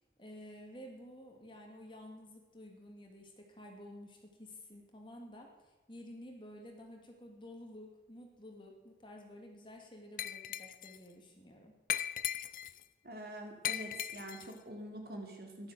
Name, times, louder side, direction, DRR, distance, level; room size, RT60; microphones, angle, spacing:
voice 1, 0.2-11.7, left 1 dB, 25° left, 1 dB, 2.6 m, -52 dB
Glass, 10.2-11.0 11.9-12.8 13.6-14.5, left 11 dB, 50° left, 0.5 m, -38 dB
voice 2, 13.0-15.7, right 1 dB, 60° right, 2 dB, 3.2 m, -45 dB
13.5 x 12.0 x 7.7 m, 1.2 s
head